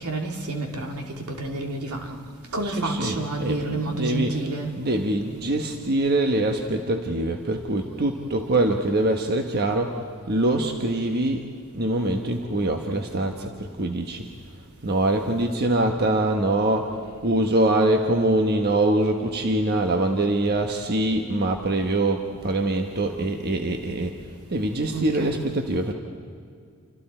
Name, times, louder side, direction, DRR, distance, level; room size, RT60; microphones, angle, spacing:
voice 1, 0.0-2.2 2.5-4.8 24.9-25.4, right 2 dB, 80° right, 2 dB, 2.7 m, -29 dB
voice 2, 2.6-4.4 4.8-10.0 10.3-11.5 11.7-14.3 14.8-16.9 17.2-24.1 24.5-25.9, right 1 dB, 45° right, 4 dB, 1.2 m, -24 dB
28.5 x 25.5 x 4.5 m, 2.2 s
head